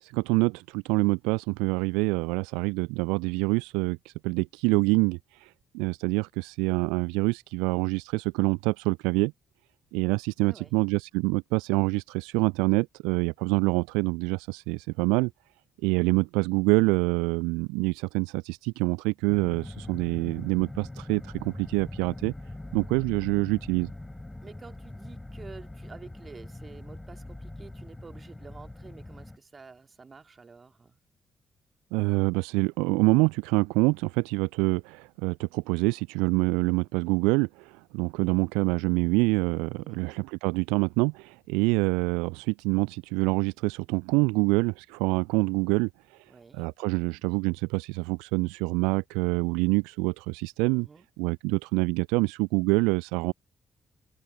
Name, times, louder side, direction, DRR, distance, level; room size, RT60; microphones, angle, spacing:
voice 1, 0.0-9.3 9.9-15.3 15.8-22.3 22.7-23.9 31.9-46.2 46.5-50.9 51.2-53.3, right 28 dB, 70° right, 0.4 m, -26 dB
voice 2, 10.4-10.7 24.4-31.0 39.8-40.1 46.3-46.7 50.7-51.1, right 4 dB, 35° right, 2.8 m, -49 dB
sound 1, 19.3-29.4, left 1 dB, 15° left, 4.1 m, -42 dB
figure-of-eight pair, 40°, 0 cm